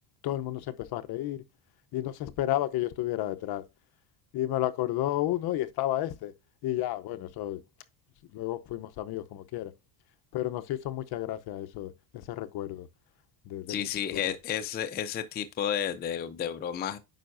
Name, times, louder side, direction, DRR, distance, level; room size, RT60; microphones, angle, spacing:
voice 1, 0.2-1.4 1.9-3.6 4.3-6.3 6.6-7.6 8.3-9.7 10.3-12.9 13.5-14.2, left 14 dB, 50° left, 0.8 m, -32 dB
voice 2, 13.7-17.0, left 9 dB, 20° left, 0.5 m, -32 dB
9.1 x 5.5 x 2.5 m
cardioid pair, 135°, 48 cm